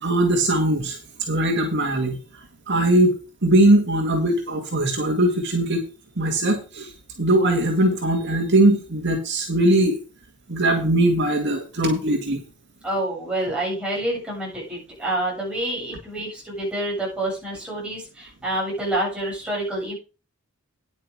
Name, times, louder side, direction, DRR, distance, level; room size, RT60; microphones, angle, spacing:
voice 1, 0.0-1.0 1.3-2.2 2.7-3.1 3.4-5.8 6.2-6.9 7.2-10.0 10.5-12.4, right 1 dB, 55° right, 2 dB, 2.1 m, -20 dB
voice 2, 12.8-20.0, right 1 dB, 5° right, -4 dB, 7.1 m, -27 dB
10.0 x 8.4 x 4.8 m, 0.33 s
head